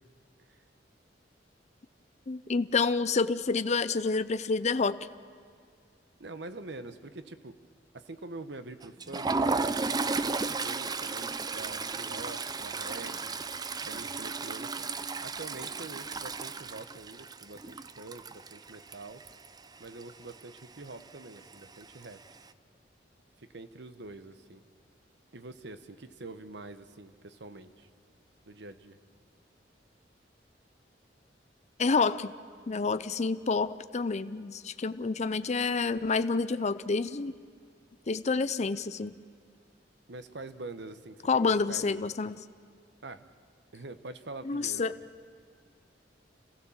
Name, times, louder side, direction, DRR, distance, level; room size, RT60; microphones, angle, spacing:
voice 1, 2.3-5.1 31.8-32.3 32.7-37.3 38.1-39.1 41.3-42.4 44.5-44.9, left 4 dB, 40° left, 13 dB, 0.6 m, -28 dB
voice 2, 6.2-7.6 7.9-13.4 13.8-14.7 15.2-19.2 19.8-22.2 23.4-24.6 25.3-27.9 28.5-29.0 40.1-42.0 43.0-43.2 43.7-44.9, right 2 dB, 70° right, 10 dB, 1.1 m, -45 dB
Toilet flush, 8.8-19.6 19.9-20.1 20.4-20.6 21.5-22.1, right 4 dB, 20° right, 0.5 m, -34 dB
30.0 x 16.0 x 7.3 m, 2.1 s
head